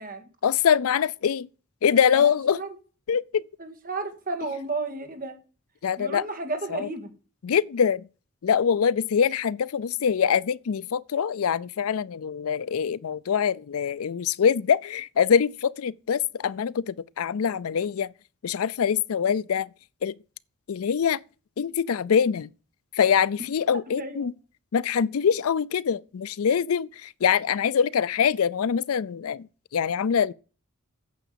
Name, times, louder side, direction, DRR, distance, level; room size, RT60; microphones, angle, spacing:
voice 1, 0.4-1.5 1.8-2.6 3.1-3.4 5.8-6.2 6.7-6.9 7.4-8.0 8.4-18.1 18.4-19.7 20.0-20.1 20.7-21.2 21.6-22.5 22.9-24.3 24.7-29.5 29.7-30.3, left 7 dB, 75° left, 0.4 m, -24 dB
voice 2, 2.1-2.7 3.6-5.4 6.0-7.1 24.0-24.3, right 3 dB, 40° right, 2.1 m, -33 dB
9.4 x 7.2 x 6.8 m
head